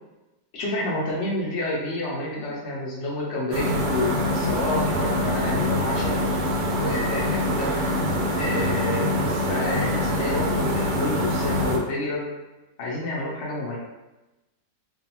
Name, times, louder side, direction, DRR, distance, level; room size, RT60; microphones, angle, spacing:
voice 1, 0.5-6.2 6.7-7.7 8.4-12.3 12.8-13.8, left 1 dB, 70° left, -4 dB, 0.6 m, -29 dB
sound 1, 3.5-11.8, left 1 dB, 85° right, 1.2 m, -24 dB
2.6 x 2.4 x 2.8 m, 1.0 s
omnidirectional pair, 1.9 m